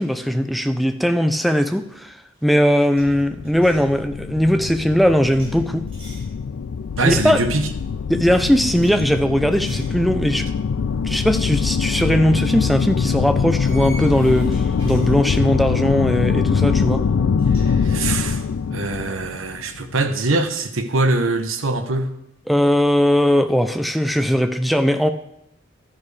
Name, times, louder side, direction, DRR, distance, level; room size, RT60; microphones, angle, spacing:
voice 1, 0.0-2.1 2.4-5.8 7.0-7.4 8.1-10.5 11.0-17.0 22.5-25.1, equal, ahead, 0.5 m, -19 dB
sound 1, 1.8-2.0 2.3-3.9 5.3-6.3 7.0-7.8 8.7-9.0 9.5-10.0 10.4-10.6 12.1-12.2 13.6-15.7 17.0-17.1 17.4-17.7 18.1-19.5, right 1 dB, 30° right, 4.9 m, -45 dB
sound 2, 3.0-20.0, left 6 dB, 80° left, 0.4 m, -23 dB
voice 2, 7.0-7.7 8.3-8.4 17.6-18.4 18.7-22.1, right 2 dB, 85° right, 1.0 m, -23 dB
12.0 x 9.9 x 3.3 m
head